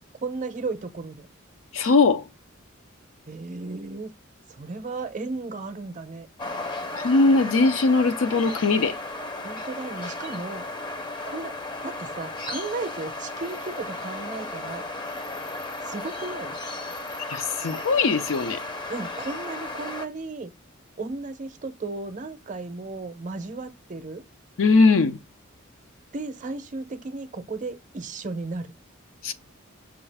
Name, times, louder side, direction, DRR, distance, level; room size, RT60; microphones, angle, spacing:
voice 1, 0.2-1.3 3.3-4.1 4.5-6.3 9.4-10.7 11.3-11.5 11.8-14.8 15.8-16.6 18.9-20.5 21.0-24.2 26.1-28.7, right 3 dB, 40° right, 0.6 m, -34 dB
voice 2, 1.7-2.3 6.9-9.0 17.3-18.6 24.6-25.2 29.2-29.3, left 3 dB, 80° left, 0.5 m, -20 dB
sound 1, 6.4-20.1, left 2 dB, 25° left, 0.6 m, -35 dB
5.8 x 2.4 x 3.3 m
head